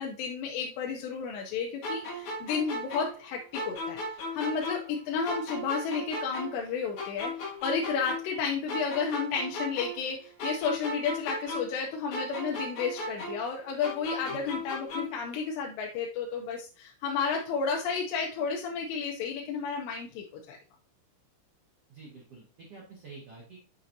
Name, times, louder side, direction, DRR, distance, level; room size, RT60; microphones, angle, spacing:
voice 1, 0.0-4.0 4.3-20.6, left 6 dB, 80° left, 0 dB, 2.8 m, -32 dB
sound 1, 1.8-5.0 5.2-8.4 8.7-11.8 12.1-15.3, left 1 dB, 50° left, 2.5 m, -36 dB
voice 2, 21.9-23.6, right 4 dB, 85° right, -2 dB, 1.3 m, -48 dB
7.4 x 6.1 x 2.7 m, 0.38 s
omnidirectional pair, 5.4 m